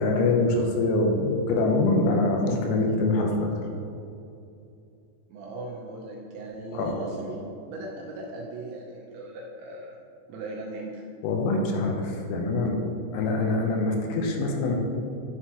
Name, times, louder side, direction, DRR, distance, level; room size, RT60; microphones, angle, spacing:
voice 1, 0.0-3.5 6.7-6.9 11.2-12.8 13.1-14.8, left 2 dB, 90° left, 1 dB, 3.4 m, -24 dB
voice 2, 5.3-10.0 10.3-11.0, right 2 dB, 80° right, -3 dB, 2.8 m, -38 dB
11.0 x 4.4 x 2.9 m, 2.6 s
omnidirectional pair, 5.9 m